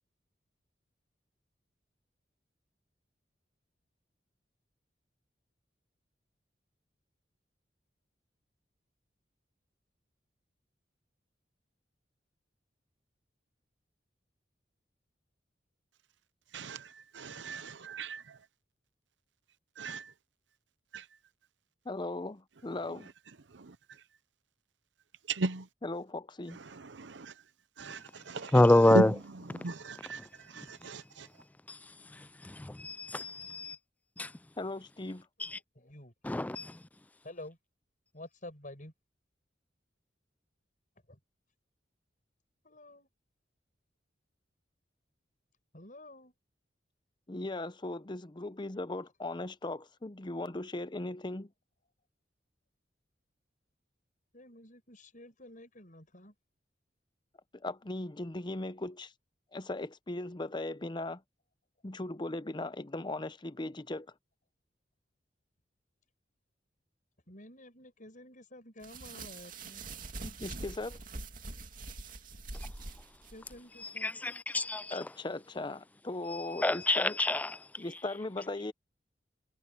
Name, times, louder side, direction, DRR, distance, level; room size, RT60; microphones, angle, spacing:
voice 1, 16.5-18.4 19.8-20.1 20.9-21.1 23.5-24.0 25.3-25.7 26.5-27.3 27.8-31.3, right 3 dB, 85° right, 0.8 m, -37 dB
voice 2, 21.8-23.1 25.8-26.6 34.6-35.3 47.3-51.5 57.5-59.1 59.5-61.2 61.8-64.1 70.2-71.0 74.9-77.2 77.8-78.7, left 2 dB, 25° left, 0.7 m, -38 dB
voice 3, 28.5-29.1 32.7-33.8 34.2-34.3 36.2-36.7 74.0-74.9 76.6-77.5, left 1 dB, 10° left, 0.3 m, -25 dB
voice 4, 35.5-36.1 37.2-37.6 38.1-38.9 41.1-41.2 42.6-43.1 45.7-46.3 54.3-56.3 67.3-69.8 73.3-74.3, left 1 dB, 45° left, 8.0 m, -50 dB
sound 1, 68.8-73.6, right 3 dB, 50° right, 2.6 m, -44 dB
head